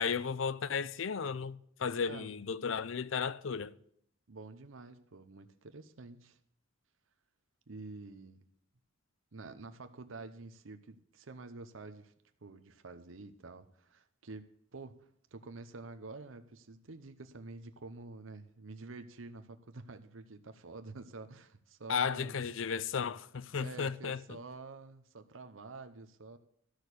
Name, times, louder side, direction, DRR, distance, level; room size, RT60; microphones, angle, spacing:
voice 1, 0.0-3.8 21.9-24.4, left 6 dB, 75° left, 0.5 m, -34 dB
voice 2, 4.3-6.4 7.7-8.5 9.3-12.1 12.4-14.5 14.7-22.5 23.6-26.4, right 3 dB, 85° right, 0.8 m, -48 dB
13.0 x 6.4 x 8.2 m
head